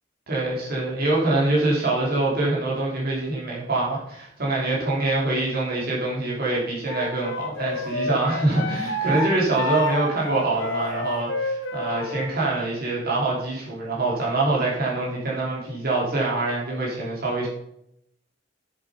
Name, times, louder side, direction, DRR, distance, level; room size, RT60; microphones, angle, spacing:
voice 1, 0.3-17.5, right 2 dB, 55° right, -5 dB, 3.7 m, -24 dB
Wind instrument woodwind instrument, 6.9-12.3, left 2 dB, 75° left, 1.7 m, -29 dB
9.5 x 8.0 x 5.1 m, 0.76 s
head